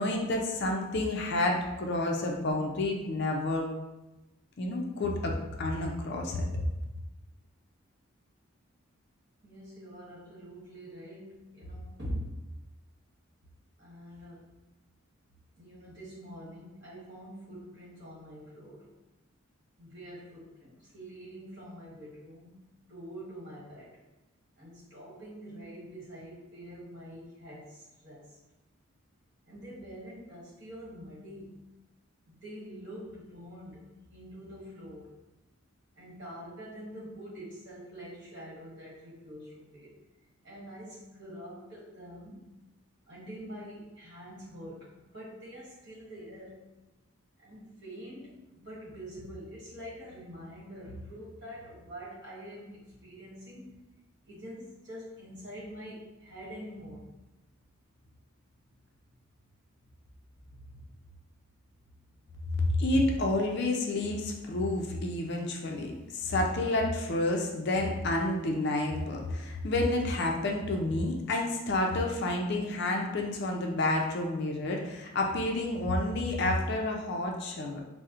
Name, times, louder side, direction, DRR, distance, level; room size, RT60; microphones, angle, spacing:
voice 1, 0.0-3.7 4.6-6.5 62.6-77.8, left 2 dB, 50° left, 1 dB, 0.4 m, -29 dB
voice 2, 9.4-12.4 13.8-14.4 15.6-18.9 19.8-22.5 22.9-24.0 24.6-28.4 29.4-31.6 32.3-33.8 34.1-35.1 36.0-39.9 40.4-42.5 43.1-46.7 47.4-53.8 54.2-57.0 60.5-60.8, equal, 55° right, -7 dB, 1.1 m, -45 dB
4.1 x 2.0 x 2.4 m, 1.0 s
head